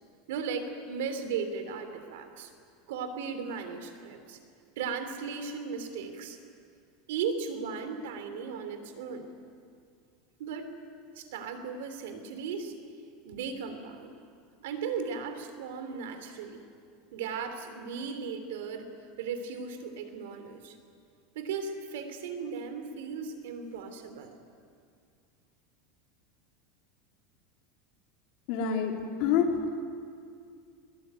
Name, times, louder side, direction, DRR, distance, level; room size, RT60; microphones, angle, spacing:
voice 1, 0.3-2.5 2.9-4.4 4.8-6.4 7.1-9.3 10.4-10.7 11.1-12.7 13.2-14.1 14.6-16.6 17.1-18.9 19.2-20.8 21.3-24.4, right 5 dB, 85° right, 8 dB, 3.2 m, -36 dB
voice 2, 28.5-28.9 29.2-29.5, left 8 dB, 55° left, 1 dB, 3.5 m, -26 dB
22.0 x 20.0 x 9.4 m, 2.3 s
supercardioid pair, 165°, 0 cm